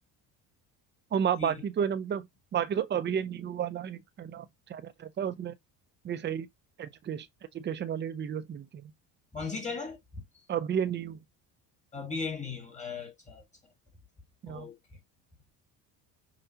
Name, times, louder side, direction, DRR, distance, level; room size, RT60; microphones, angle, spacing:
voice 1, 1.1-2.3 2.5-5.6 6.0-6.5 6.8-7.3 7.5-8.9 10.5-11.2 14.4-14.7, right 8 dB, 25° right, 0.5 m, -32 dB
voice 2, 9.3-10.2 11.9-13.4 14.5-14.8, left 4 dB, 15° left, 1.6 m, -37 dB
5.6 x 2.2 x 2.8 m
supercardioid pair, 90°, 42 cm